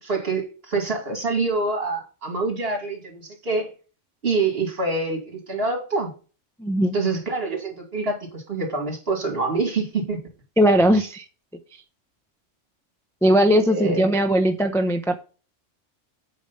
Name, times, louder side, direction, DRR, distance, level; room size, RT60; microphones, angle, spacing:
voice 1, 0.0-3.7 4.2-6.1 6.9-10.2 13.7-14.0, right 3 dB, 50° right, 2 dB, 2.6 m, -26 dB
voice 2, 6.6-6.9 10.6-11.2 13.2-15.1, equal, 5° left, 5 dB, 0.5 m, -19 dB
8.5 x 5.1 x 5.5 m, 0.35 s
omnidirectional pair, 1.3 m